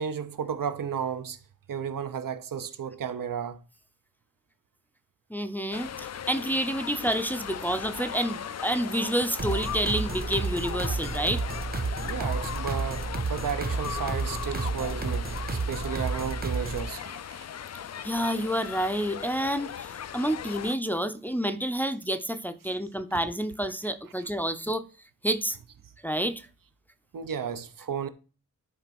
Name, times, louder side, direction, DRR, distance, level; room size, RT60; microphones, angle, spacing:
voice 1, 0.0-1.4 1.7-3.6 11.8-17.4 22.6-22.7 23.8-23.9 24.2-24.3 25.5-25.6 27.1-28.1, right 7 dB, 80° right, 1.0 m, -34 dB
voice 2, 5.3-11.4 18.0-24.9 25.2-25.6 26.0-26.4, equal, 5° left, 0.6 m, -29 dB
sound 1, 5.7-20.7, left 9 dB, 55° left, 0.5 m, -38 dB
sound 2, 9.4-16.9, right 4 dB, 30° right, 0.8 m, -31 dB
11.0 x 3.9 x 5.9 m
wide cardioid pair, 155°, 33 cm